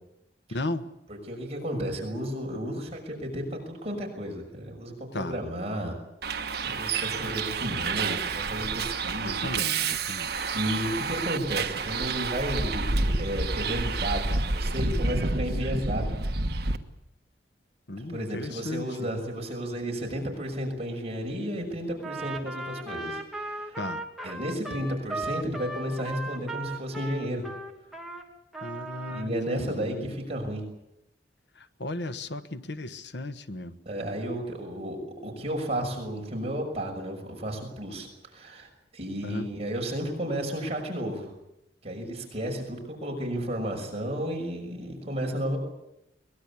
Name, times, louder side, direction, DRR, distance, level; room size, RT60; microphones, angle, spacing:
voice 1, 0.5-0.9 5.1-5.4 9.2-10.3 17.9-18.9 23.8-24.0 28.6-30.1 31.6-33.7 39.2-39.5, left 2 dB, 75° left, 10 dB, 1.3 m, -35 dB
voice 2, 1.1-6.0 6.6-9.5 10.5-16.1 16.5-16.7 18.0-23.8 24.2-27.4 29.1-30.6 33.9-35.0 35.2-41.3 41.8-45.6, equal, 35° right, 1 dB, 6.0 m, -33 dB
Bus, 6.2-16.8, right 3 dB, 65° right, 1.4 m, -29 dB
Trumpet, 22.0-28.2 28.5-29.3, right 2 dB, ahead, 2.6 m, -37 dB
23.0 x 20.5 x 8.6 m, 0.84 s
head